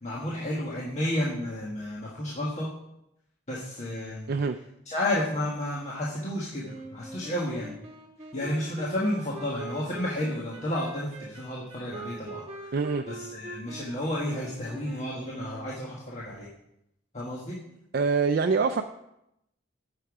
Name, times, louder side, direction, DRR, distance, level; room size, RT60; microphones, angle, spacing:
voice 1, 0.0-2.7 3.5-4.3 4.9-7.7 8.3-12.7 13.1-16.5 17.1-17.6, left 1 dB, 40° left, -6 dB, 1.5 m, -31 dB
Wind instrument woodwind instrument, 6.6-16.1, right 2 dB, 35° right, 1.2 m, -43 dB
voice 2, 12.7-13.0 17.9-18.8, right 4 dB, 55° right, 7 dB, 0.4 m, -24 dB
8.9 x 6.8 x 4.8 m, 0.83 s
head